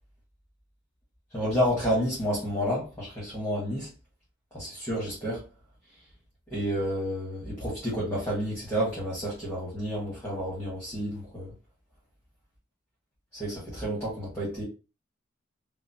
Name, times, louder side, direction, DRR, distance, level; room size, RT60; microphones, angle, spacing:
voice 1, 1.3-3.9 4.5-5.4 6.5-11.5 13.3-14.6, equal, 15° left, 1.2 m, -30 dB
3.0 x 2.0 x 2.6 m
head